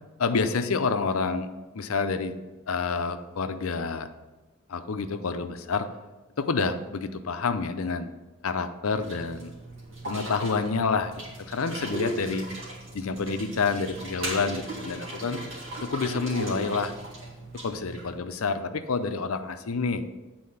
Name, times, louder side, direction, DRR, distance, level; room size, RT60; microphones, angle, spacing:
voice 1, 0.2-1.5 1.7-2.3 2.7-4.1 4.7-5.9 6.4-8.1 8.4-9.5 10.0-11.1 11.4-12.5 12.9-15.4 15.8-16.9 17.6-20.0, left 4 dB, 85° left, 9 dB, 0.6 m, -28 dB
sound 1, 8.9-18.2, right 2 dB, 65° right, 2.0 m, -38 dB
8.5 x 4.3 x 5.7 m, 1.1 s
head